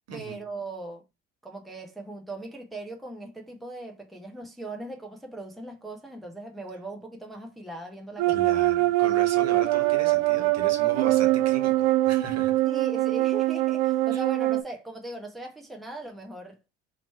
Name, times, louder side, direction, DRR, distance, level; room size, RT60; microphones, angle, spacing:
voice 1, 0.1-1.0 1.4-8.6 12.6-16.6, right 2 dB, ahead, 0.9 m, -39 dB
sound 1, 8.2-14.6, right 17 dB, 65° right, 0.5 m, -23 dB
voice 2, 8.3-12.5 14.1-14.2, right 5 dB, 50° right, 1.6 m, -37 dB
3.0 x 2.9 x 4.4 m
hypercardioid pair, 65°, 34 cm